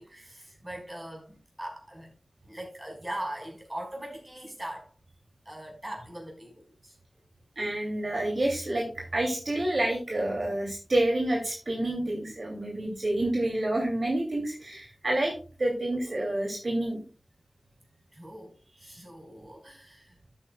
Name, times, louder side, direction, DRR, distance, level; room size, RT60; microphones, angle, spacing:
voice 1, 0.0-2.1 2.4-4.9 5.5-7.0 18.1-20.2, right 1 dB, 25° right, 5.1 m, -41 dB
voice 2, 7.6-17.0 18.8-19.0, right 1 dB, 65° right, 2.7 m, -28 dB
13.5 x 9.1 x 2.3 m
wide cardioid pair, 75°, 0 cm